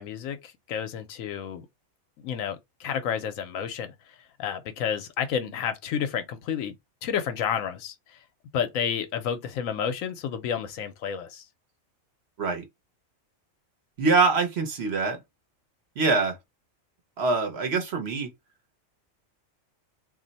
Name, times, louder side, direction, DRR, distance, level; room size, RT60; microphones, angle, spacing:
voice 1, 0.0-1.7 2.2-6.7 7.0-8.2 8.5-11.5, left 8 dB, 85° left, 1.0 m, -31 dB
voice 2, 14.0-15.2 16.0-16.4 17.2-18.3, right 4 dB, 55° right, 0.9 m, -24 dB
2.6 x 2.1 x 3.9 m
omnidirectional pair, 1.4 m